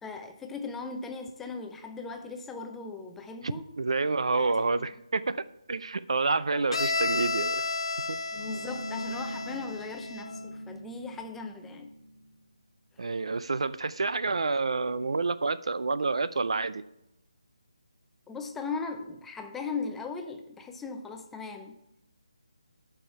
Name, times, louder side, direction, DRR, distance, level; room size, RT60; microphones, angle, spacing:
voice 1, 0.0-3.7 4.3-4.6 6.5-6.7 8.4-11.9 18.3-21.8, left 4 dB, 5° left, 4 dB, 0.6 m, -38 dB
voice 2, 3.8-7.6 8.1-8.2 13.0-16.8, right 3 dB, 65° right, 15 dB, 0.5 m, -28 dB
Bowed string instrument, 6.7-10.5, left 3 dB, 65° left, 0.5 m, -32 dB
sound 1, 8.3-12.3, equal, 15° right, 2.4 m, -42 dB
11.5 x 5.6 x 4.7 m, 0.87 s
figure-of-eight pair, 155°, 3 cm